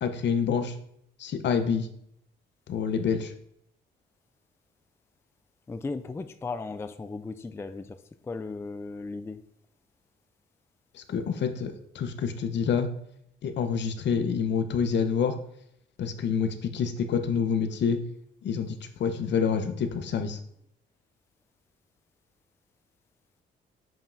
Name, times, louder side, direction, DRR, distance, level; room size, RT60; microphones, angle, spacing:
voice 1, 0.0-0.7 1.2-1.9 2.7-3.3 10.9-12.9 13.4-15.4 16.0-18.0 18.4-20.4, left 6 dB, 65° left, 0.7 m, -27 dB
voice 2, 5.7-9.4, left 3 dB, 15° left, 0.3 m, -36 dB
7.1 x 5.4 x 2.5 m
cardioid pair, 90°, 20 cm